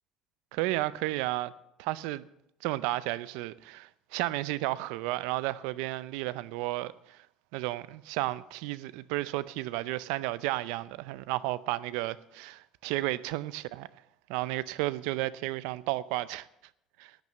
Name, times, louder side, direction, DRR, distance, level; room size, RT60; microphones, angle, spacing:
voice 1, 0.5-1.5 1.8-2.2 2.6-7.2 7.5-13.9 14.3-16.5 17.0-17.2, right 17 dB, 85° right, 0.6 m, -33 dB
11.5 x 9.3 x 7.6 m
cardioid pair, 160°, 0 cm